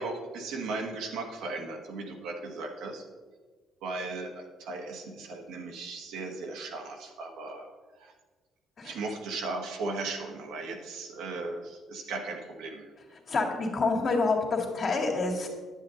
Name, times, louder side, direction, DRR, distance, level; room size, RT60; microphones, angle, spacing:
voice 1, 0.0-3.0 3.8-7.7 8.0-8.1 8.8-12.8, right 3 dB, 85° right, 1 dB, 1.5 m, -37 dB
voice 2, 13.3-15.5, left 3 dB, 45° left, 0 dB, 2.0 m, -27 dB
9.8 x 8.3 x 3.9 m, 1.4 s
cardioid pair, 115°, 0 cm